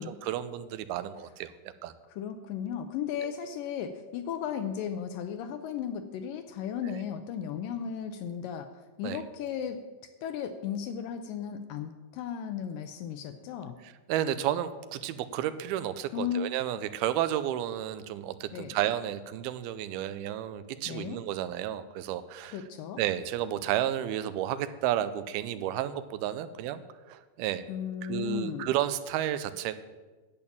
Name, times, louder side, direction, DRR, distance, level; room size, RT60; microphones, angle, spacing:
voice 1, 0.0-1.5 1.8-1.9 6.9-7.0 9.0-9.2 14.1-22.6 23.0-26.8 27.1-27.6 28.0-29.7, right 11 dB, 85° right, 13 dB, 2.5 m, -32 dB
voice 2, 2.1-13.8 16.1-16.4 16.7-16.8 18.5-18.7 20.9-21.2 22.5-23.0 27.7-28.7, left 8 dB, 80° left, 8 dB, 2.1 m, -35 dB
10.5 x 8.7 x 7.1 m, 1.3 s
omnidirectional pair, 4.4 m